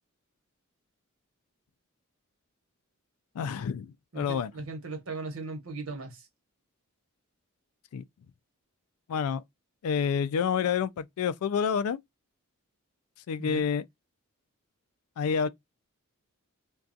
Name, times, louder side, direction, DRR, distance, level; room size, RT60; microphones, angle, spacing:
voice 1, 3.4-4.5 7.9-8.0 9.1-9.4 9.8-12.0 13.3-13.8 15.2-15.5, left 7 dB, 90° left, 0.3 m, -28 dB
voice 2, 4.1-6.3 13.4-13.6, right 3 dB, 70° right, 1.0 m, -38 dB
2.3 x 2.3 x 2.5 m
head